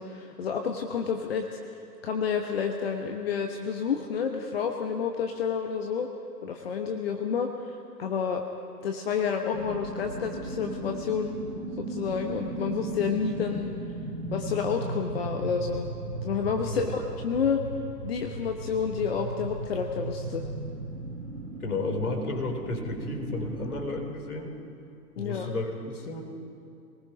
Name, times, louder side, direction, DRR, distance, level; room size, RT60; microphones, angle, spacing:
voice 1, 0.0-1.7 2.0-6.1 6.4-8.4 8.8-11.4 11.8-13.7 14.3-15.9 16.2-17.6 18.0-20.4 25.2-25.5, left 6 dB, 40° left, 3 dB, 1.1 m, -30 dB
sound 1, 9.5-23.9, right 2 dB, 75° right, 4.4 m, -37 dB
voice 2, 21.6-24.5 25.2-26.2, left 2 dB, 60° left, 4 dB, 3.4 m, -32 dB
26.0 x 19.5 x 5.2 m, 2.6 s
figure-of-eight pair, 125°, 49 cm